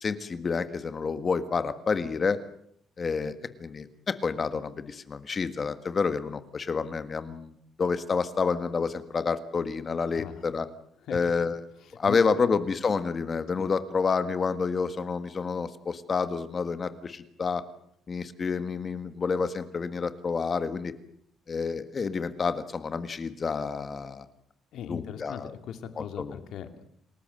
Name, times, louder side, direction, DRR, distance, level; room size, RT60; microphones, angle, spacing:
voice 1, 0.0-2.4 3.0-10.7 11.1-11.6 11.9-17.6 18.1-20.9 21.5-24.3 24.9-25.5 26.0-26.4, left 5 dB, 30° left, 11 dB, 1.6 m, -29 dB
voice 2, 11.8-12.2 13.6-13.7 24.7-26.9, left 9 dB, 65° left, 8 dB, 2.5 m, -39 dB
28.5 x 19.5 x 7.8 m, 0.70 s
cardioid pair, 150°, 0 cm